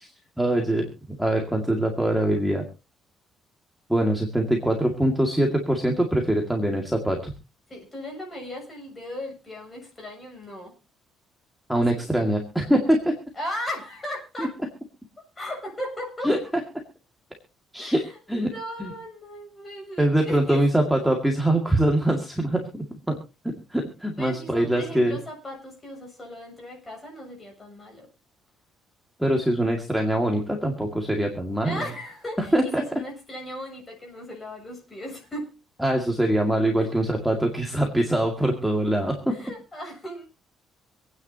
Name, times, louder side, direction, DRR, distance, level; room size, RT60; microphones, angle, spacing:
voice 1, 0.4-2.6 3.9-7.3 11.7-13.1 16.2-16.4 17.7-18.0 18.3-18.5 18.8-18.9 20.0-23.2 23.7-25.2 29.2-31.8 32.5-32.8 35.8-39.4, right 1 dB, ahead, 1 dB, 2.1 m, -23 dB
voice 2, 7.7-10.7 11.7-12.1 13.3-14.5 15.2-16.3 17.8-20.7 24.2-28.1 31.6-35.5 36.8-36.9 39.3-40.3, left 1 dB, 20° left, 1 dB, 7.0 m, -37 dB
26.5 x 9.6 x 2.8 m, 0.30 s
cardioid pair, 145°, 0 cm